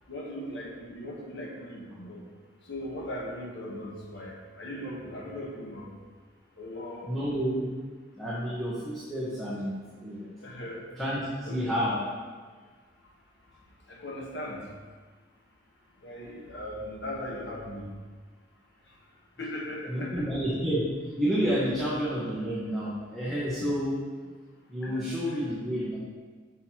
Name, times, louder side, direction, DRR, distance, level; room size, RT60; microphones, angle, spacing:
voice 1, 0.1-2.2 2.7-5.9 6.6-7.1 10.4-10.8 11.4-11.7 13.9-14.6 16.0-17.9 19.4-20.2 24.8-25.0, left 1 dB, 75° left, -3 dB, 1.1 m, -38 dB
voice 2, 7.1-7.7 8.2-10.3 11.0-12.0 19.9-20.8 21.2-23.9 24.7-26.0, equal, ahead, -11 dB, 1.2 m, -30 dB
6.1 x 6.1 x 2.9 m, 1.5 s
head